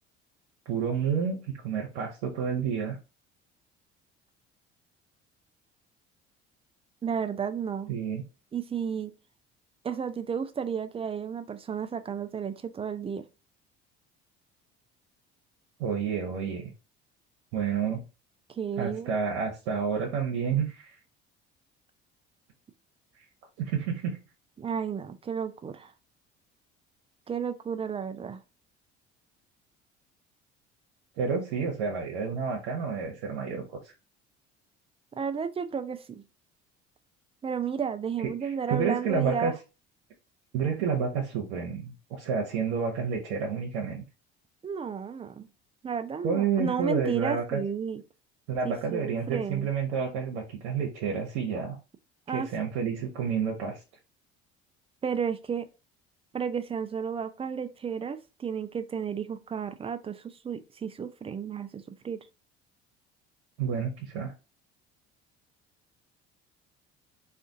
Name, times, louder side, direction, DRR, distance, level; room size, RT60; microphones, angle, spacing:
voice 1, 0.7-3.0 7.9-8.2 15.8-16.7 17.5-18.0 18.8-20.9 23.6-24.2 31.2-33.9 38.2-39.5 40.5-44.0 46.2-47.6 48.5-51.8 52.3-53.8 63.6-64.3, right 6 dB, 75° right, 0.8 m, -30 dB
voice 2, 7.0-7.9 8.5-9.1 9.8-13.3 17.8-17.9 18.6-19.1 24.6-25.9 27.3-28.4 35.2-36.2 37.4-39.5 44.6-45.5 45.8-48.0 48.6-49.7 52.3-52.5 55.0-55.7 56.3-62.2, right 7 dB, 20° right, 0.3 m, -32 dB
2.6 x 2.5 x 3.6 m
hypercardioid pair, 60°, 32 cm